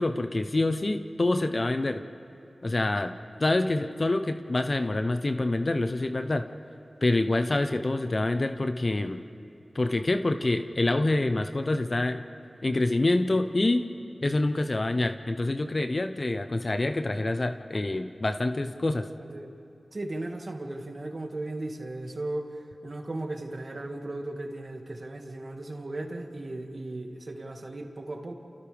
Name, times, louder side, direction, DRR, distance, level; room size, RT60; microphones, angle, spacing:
voice 1, 0.0-2.0 2.6-3.1 3.4-6.4 7.0-9.2 9.7-12.2 12.6-13.8 14.2-19.0, left 2 dB, 50° left, 7 dB, 0.9 m, -26 dB
voice 2, 19.2-19.5 19.9-28.3, right 2 dB, 55° right, 3 dB, 2.1 m, -36 dB
29.5 x 29.0 x 3.5 m, 2.6 s
cardioid pair, 45°, 0 cm